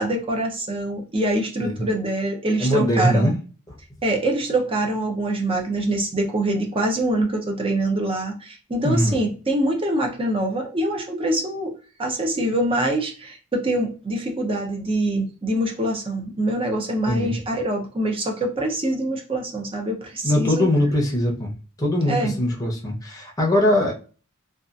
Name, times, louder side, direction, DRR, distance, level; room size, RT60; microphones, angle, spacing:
voice 1, 0.0-3.3 4.0-11.7 12.0-20.7 22.1-22.3, right 1 dB, 25° right, 2 dB, 0.6 m, -24 dB
voice 2, 2.6-3.3 8.8-9.1 17.1-17.3 20.2-21.5 21.8-23.9, left 1 dB, 15° left, -1 dB, 0.7 m, -21 dB
2.7 x 2.4 x 2.4 m, 0.37 s
head